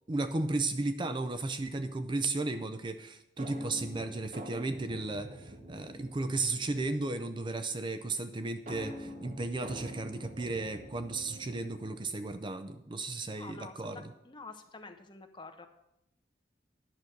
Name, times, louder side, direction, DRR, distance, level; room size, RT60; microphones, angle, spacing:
voice 1, 0.1-14.1, right 2 dB, 25° right, 9 dB, 0.5 m, -34 dB
sound 1, 3.4-7.1 8.7-12.3, equal, 40° right, 1.3 m, -46 dB
voice 2, 13.2-15.7, left 3 dB, 25° left, 6 dB, 0.9 m, -48 dB
10.5 x 6.1 x 6.6 m, 0.83 s
head